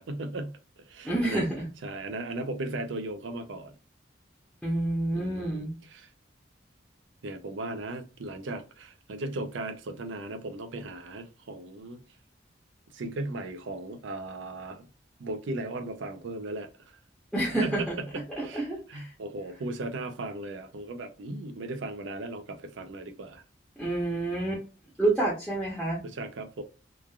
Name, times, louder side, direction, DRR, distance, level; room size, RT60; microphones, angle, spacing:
voice 1, 0.0-1.4 1.8-3.8 5.1-6.1 7.2-12.0 12.9-14.9 15.2-17.0 17.6-23.4 26.0-26.6, right 2 dB, 80° right, 0.5 m, -37 dB
voice 2, 1.0-1.6 4.6-5.7 17.3-17.9 18.4-19.1 23.8-24.6 25.0-26.0, right 2 dB, ahead, 0.7 m, -28 dB
3.1 x 2.4 x 2.3 m
head